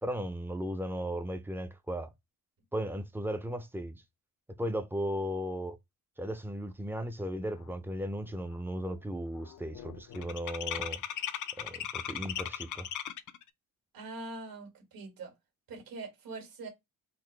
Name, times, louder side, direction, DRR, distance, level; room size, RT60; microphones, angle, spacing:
voice 1, 0.0-2.1 2.7-4.0 4.6-5.8 6.2-11.0 11.6-12.9, equal, 5° right, 0.4 m, -36 dB
sound 1, 8.2-8.5 8.8-13.4, left 10 dB, 55° left, 0.4 m, -38 dB
voice 2, 13.9-15.3 15.7-16.7, right 3 dB, 65° right, 1.7 m, -43 dB
3.9 x 2.6 x 3.1 m
cardioid pair, 140°, 38 cm